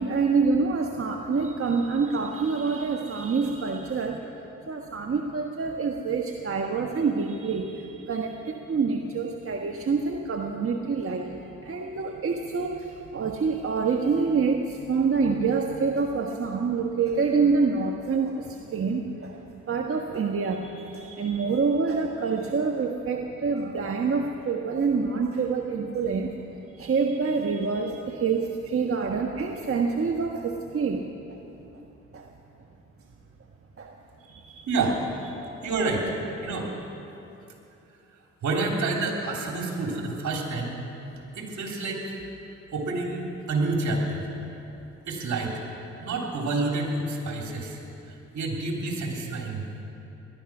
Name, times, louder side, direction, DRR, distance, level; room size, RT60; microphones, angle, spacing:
voice 1, 0.0-4.3 4.6-26.4 26.7-31.4 32.1-32.3 33.8-34.7 35.6-35.8, right 4 dB, 45° right, 2 dB, 1.3 m, -27 dB
voice 2, 34.7-35.0 35.6-36.0 36.4-36.7 38.4-40.8 41.4-42.2 42.7-44.3 45.1-45.6 46.0-47.8 48.1-49.7, right 3 dB, 70° right, 0 dB, 3.2 m, -28 dB
19.5 x 12.0 x 6.0 m, 3.0 s
supercardioid pair, 50°, 30 cm